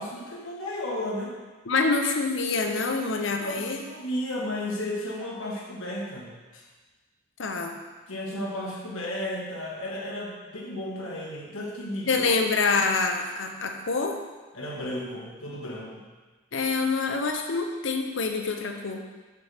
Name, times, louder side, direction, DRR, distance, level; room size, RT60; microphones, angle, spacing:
voice 1, 0.0-1.4 3.4-6.6 8.1-12.3 14.5-16.1, left 1 dB, 85° left, -3 dB, 1.5 m, -34 dB
voice 2, 1.7-3.8 7.4-7.7 12.1-14.2 16.5-19.0, left 4 dB, 65° left, 4 dB, 0.7 m, -26 dB
6.7 x 6.5 x 3.4 m, 1.3 s
head